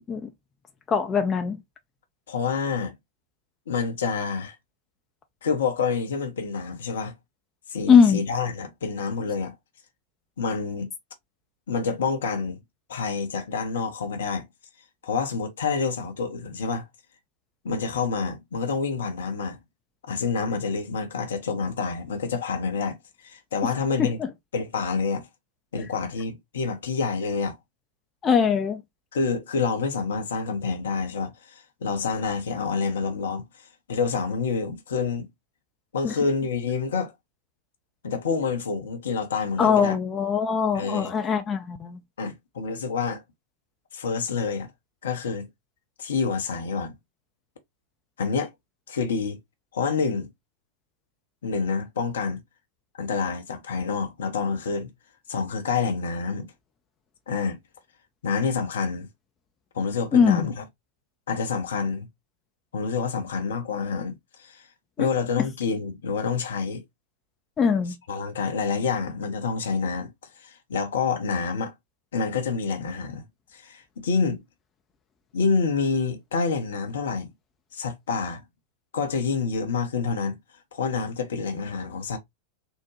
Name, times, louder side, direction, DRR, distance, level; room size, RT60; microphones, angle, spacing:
voice 1, 0.9-1.6 7.9-8.2 24.0-24.3 28.2-28.8 36.0-36.1 39.6-42.0 60.1-60.5 65.0-65.1 67.6-67.9, left 6 dB, 25° left, 0.5 m, -21 dB
voice 2, 2.3-2.9 3.7-4.6 5.4-7.1 7.7-9.5 10.4-10.9 11.7-12.6 12.9-14.5 15.0-16.9 17.6-19.6 20.1-23.0 23.2-24.2 24.5-25.3 25.7-27.6 29.1-33.4 33.9-35.3 35.9-37.1 38.0-40.0 40.7-41.1 42.2-43.2 43.9-44.7 45.0-45.5 46.0-47.0 48.2-48.5 48.9-49.4 49.7-50.3 51.4-52.4 52.9-54.9 55.3-56.5 57.3-57.6 58.2-59.1 59.7-60.6 61.3-62.1 62.7-64.6 65.0-66.8 68.1-70.1 70.4-71.7 72.1-73.2 73.5-74.4 75.3-77.3 77.7-78.4 78.9-80.4 80.7-82.2, left 5 dB, 65° left, 0.7 m, -27 dB
3.6 x 2.1 x 3.0 m
figure-of-eight pair, 90°, 0 cm